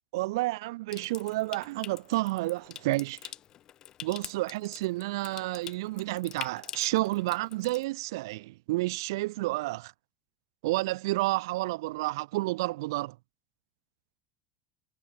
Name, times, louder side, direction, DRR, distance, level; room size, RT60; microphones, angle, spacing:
voice 1, 0.1-3.2 4.0-9.9 10.6-13.2, right 20 dB, 80° right, 0.6 m, -30 dB
Water tap faucet / Sink (filling or washing) / Trickle dribble, 0.9-7.8, left 11 dB, 30° left, 2.1 m, -46 dB
supercardioid pair, 170°, 2 cm